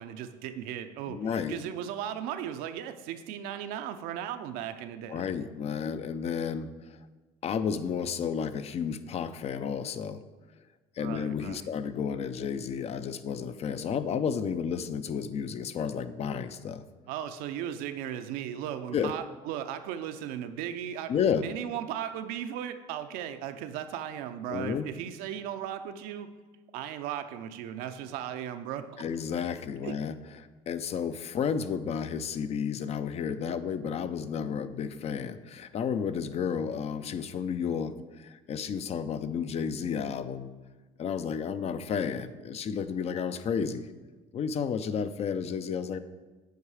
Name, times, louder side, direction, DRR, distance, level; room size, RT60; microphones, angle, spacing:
voice 1, 0.0-1.2 1.5-5.3 11.0-11.7 17.1-21.1 21.4-26.3 26.7-29.0 29.8-30.0, right 10 dB, 80° right, 9 dB, 0.6 m, -36 dB
voice 2, 1.1-1.7 5.1-7.1 7.4-10.2 11.0-16.8 18.9-19.1 21.1-21.5 24.5-24.9 29.0-40.5 41.0-43.9 44.3-46.0, left 7 dB, 45° left, 12 dB, 0.5 m, -32 dB
8.1 x 4.7 x 4.8 m, 1.3 s
supercardioid pair, 90°, 15 cm